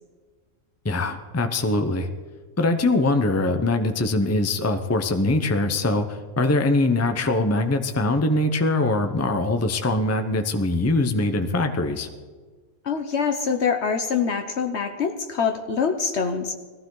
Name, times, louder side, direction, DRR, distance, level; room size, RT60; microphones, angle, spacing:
voice 1, 0.8-2.1 2.6-12.1, left 2 dB, 15° left, 7 dB, 0.7 m, -22 dB
voice 2, 12.8-16.5, left 6 dB, 60° left, 6 dB, 1.1 m, -24 dB
20.0 x 15.0 x 3.9 m, 1.4 s
omnidirectional pair, 1.3 m